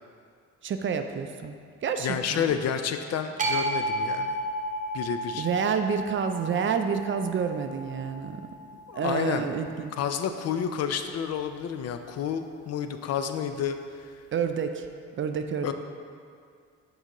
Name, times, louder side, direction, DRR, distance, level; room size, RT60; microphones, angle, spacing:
voice 1, 0.6-1.6 1.8-2.6 5.3-8.4 8.9-9.9 14.3-14.9 15.2-15.7, right 6 dB, 40° right, 7 dB, 0.4 m, -29 dB
voice 2, 2.0-4.4 4.9-5.5 8.9-9.5 10.0-14.1 15.6-15.7, left 8 dB, 55° left, 8 dB, 0.4 m, -30 dB
sound 1, 3.4-9.6, right 1 dB, 25° right, 0.8 m, -33 dB
6.7 x 4.7 x 3.0 m, 2.2 s
cardioid pair, 90°, 30 cm